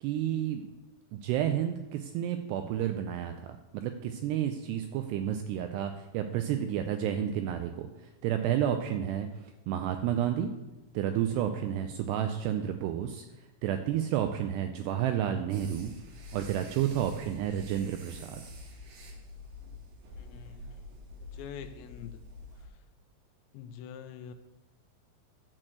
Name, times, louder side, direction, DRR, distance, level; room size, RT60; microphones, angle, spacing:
voice 1, 0.0-0.7 1.1-7.9 8.2-9.3 9.7-10.5 10.9-13.3 13.6-15.9 16.3-18.4, right 10 dB, 85° right, 7 dB, 2.4 m, -31 dB
sound 1, 15.5-22.7, left 2 dB, 65° right, 2.8 m, -47 dB
voice 2, 20.2-20.8 21.2-22.2 22.6-22.8 23.5-24.3, left 8 dB, 85° left, 8 dB, 2.8 m, -45 dB
12.5 x 4.4 x 7.7 m, 1.1 s
omnidirectional pair, 5.3 m